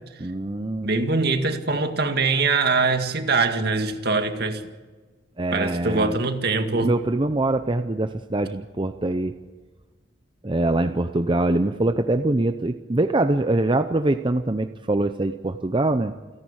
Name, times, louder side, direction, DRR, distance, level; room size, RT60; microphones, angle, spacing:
voice 1, 0.2-0.9 5.4-6.2 6.7-9.3 10.4-16.1, right 2 dB, 25° right, 0.7 m, -23 dB
voice 2, 0.8-4.6 5.5-6.9, right 3 dB, 60° right, 2.0 m, -23 dB
28.5 x 11.0 x 8.9 m
head